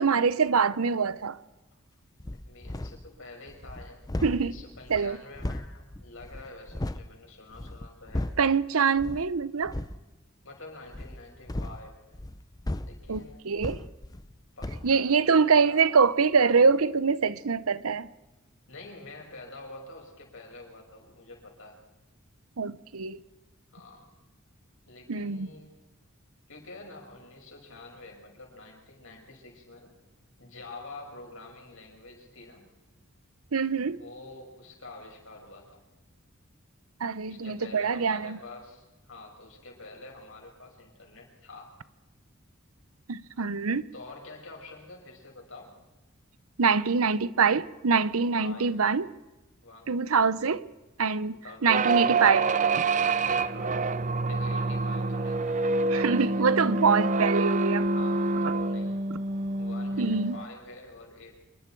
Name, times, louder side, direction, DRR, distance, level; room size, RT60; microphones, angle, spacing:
voice 1, 0.0-1.4 4.2-4.5 4.9-5.2 8.4-9.7 13.1-13.8 14.8-18.1 22.6-23.2 25.1-25.5 33.5-34.0 37.0-38.4 43.1-43.9 46.6-49.1 49.9-50.7 51.0-51.4 51.6-52.5 55.9-57.9 60.0-60.4, right 5 dB, 85° right, 0.8 m, -24 dB
voice 2, 2.2-8.3 10.4-12.0 12.8-13.6 14.6-15.9 18.7-21.8 23.7-24.1 24.9-25.8 26.5-29.9 30.4-32.7 33.8-35.8 37.3-41.8 43.9-45.8 48.4-48.7 49.6-50.0 51.4-51.8 53.4-56.7 57.9-59.0 59.6-61.4, left 2 dB, 65° left, 6.5 m, -47 dB
sound 1, 2.2-3.1 3.5-7.1 7.5-8.6 9.0-9.3 9.6-10.0 10.9-14.3 14.6-14.9, left 1 dB, 20° left, 0.6 m, -36 dB
sound 2, 51.7-60.4, right 3 dB, 35° right, 0.7 m, -27 dB
27.0 x 22.5 x 4.7 m
head